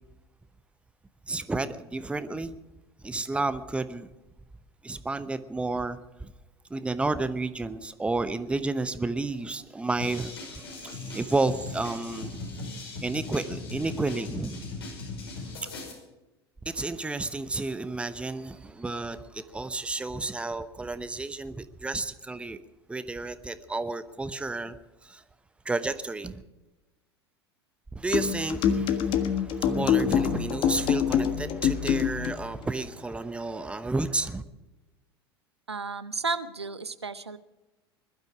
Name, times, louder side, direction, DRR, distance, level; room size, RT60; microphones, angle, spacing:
voice 1, 1.3-2.6 3.0-4.1 4.8-6.3 6.7-12.4 13.0-14.6 15.5-15.7 16.6-22.6 22.9-24.8 25.0-25.2 25.6-26.4 27.9-34.4, right 3 dB, 10° right, 13 dB, 0.9 m, -31 dB
sound 1, 10.0-15.9, left 3 dB, 70° left, 5.6 m, -39 dB
sound 2, 28.1-32.4, left 8 dB, 40° left, 1.5 m, -25 dB
voice 2, 35.7-37.4, right 4 dB, 85° right, 13 dB, 0.8 m, -33 dB
21.0 x 12.0 x 4.8 m, 1.1 s
figure-of-eight pair, 80°, 14 cm